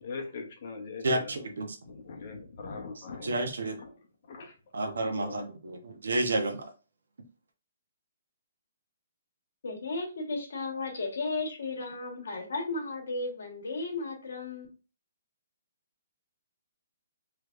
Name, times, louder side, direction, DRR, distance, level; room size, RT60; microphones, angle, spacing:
voice 1, 0.0-1.5 1.8-3.3 3.8-3.9 4.3-4.5 5.0-5.4, left 4 dB, 50° left, 1.0 m, -41 dB
voice 2, 1.0-1.7 3.2-3.7 4.7-6.6, right 2 dB, 85° right, 0.8 m, -30 dB
voice 3, 9.6-14.7, left 3 dB, 75° left, 1.3 m, -34 dB
3.3 x 3.1 x 2.4 m
hypercardioid pair, 155°, 0 cm